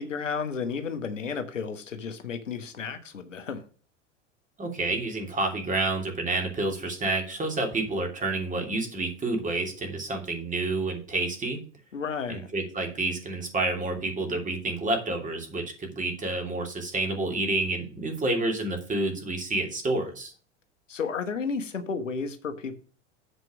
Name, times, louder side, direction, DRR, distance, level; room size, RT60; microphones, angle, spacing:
voice 1, 0.0-3.6 11.9-12.5 20.9-22.7, left 5 dB, 90° left, 9 dB, 1.1 m, -32 dB
voice 2, 4.6-11.6 12.3-20.3, right 2 dB, 20° right, 3 dB, 2.9 m, -29 dB
8.2 x 4.6 x 6.1 m, 0.39 s
hypercardioid pair, 90°, 36 cm